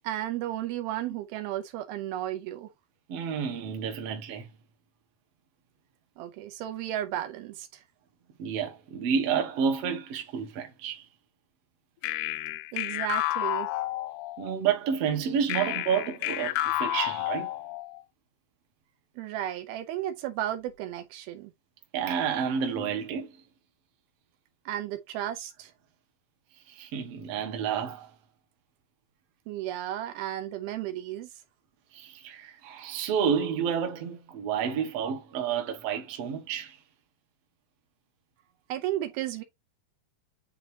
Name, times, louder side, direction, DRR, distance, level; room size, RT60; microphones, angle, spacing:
voice 1, 0.0-2.7 6.2-7.8 12.7-13.8 19.2-21.5 24.7-25.7 29.5-31.3 38.7-39.4, right 12 dB, 80° right, 2.5 m, -34 dB
voice 2, 3.1-4.5 8.4-11.0 14.4-17.5 21.9-23.4 26.7-28.1 31.9-36.8, right 7 dB, 55° right, 1.7 m, -30 dB
sound 1, 12.0-14.6 15.5-18.0, left 15 dB, 85° left, 2.5 m, -31 dB
9.8 x 3.4 x 2.8 m
omnidirectional pair, 4.5 m